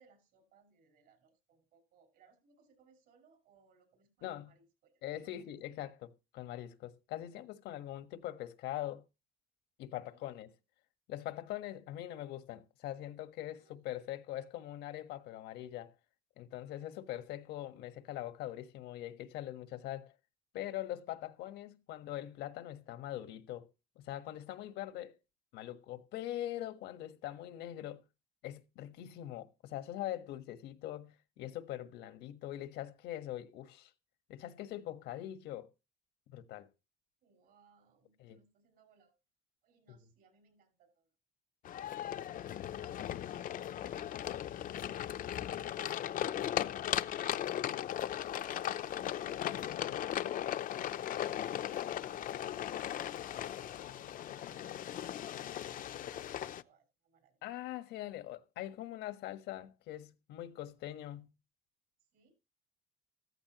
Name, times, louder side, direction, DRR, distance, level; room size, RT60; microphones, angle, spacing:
voice 1, 0.0-5.5 10.1-10.5 13.4-13.7 37.2-39.2 39.6-41.1 41.8-42.2 49.0-57.4 62.1-62.3, right 5 dB, 65° right, 6.1 m, -69 dB
voice 2, 4.2-4.5 5.0-9.0 9.8-10.5 11.1-15.9 16.4-20.1 20.5-23.7 23.9-25.2 25.5-28.0 28.4-33.9 34.3-35.7 36.3-36.7 38.2-38.4 49.5-49.6 57.4-61.3, left 13 dB, 85° left, 1.5 m, -42 dB
sound 1, 41.6-56.6, left 11 dB, 55° left, 0.7 m, -37 dB
14.5 x 14.0 x 3.0 m
cardioid pair, 110°, 17 cm